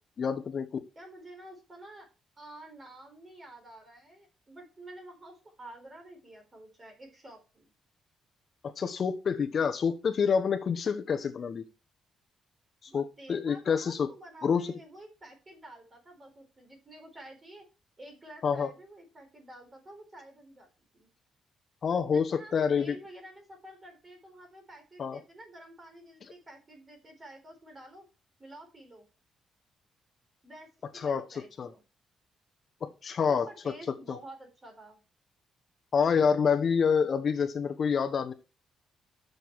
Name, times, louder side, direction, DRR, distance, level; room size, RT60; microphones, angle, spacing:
voice 1, 0.2-0.7 8.6-11.6 12.8-14.1 14.4-14.7 18.4-18.7 21.8-23.0 25.0-25.2 30.9-31.2 31.6-31.7 32.8-33.5 34.1-34.2 35.9-38.3, left 6 dB, 50° left, 7 dB, 0.9 m, -27 dB
voice 2, 1.0-2.1 2.4-7.7 12.9-17.7 18.0-20.7 20.9-21.1 22.1-28.0 28.4-29.0 30.4-31.8 33.2-35.0, right 1 dB, 25° right, 4 dB, 4.0 m, -50 dB
9.2 x 6.6 x 4.6 m, 0.32 s
cardioid pair, 120°, 0 cm